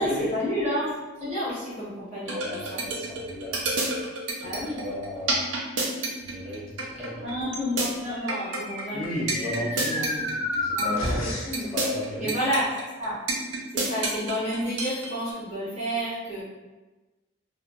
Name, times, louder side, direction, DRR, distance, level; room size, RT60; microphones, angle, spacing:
voice 1, 0.0-2.8 4.4-4.8 7.2-9.6 9.9-10.1 10.8-11.7 12.1-12.7 13.0-13.2 13.7-16.5, equal, 35° right, -11 dB, 1.1 m, -30 dB
voice 2, 2.2-4.0 4.4-4.5 4.8-5.4 6.2-7.3 8.9-11.3 11.7-12.4, equal, ahead, -13 dB, 1.4 m, -34 dB
sound 1, 2.3-15.3, right 3 dB, 70° right, 0.6 m, -28 dB
sound 2, 8.0-11.7, left 1 dB, 80° left, 0.7 m, -31 dB
2.7 x 2.1 x 2.6 m, 1.2 s
head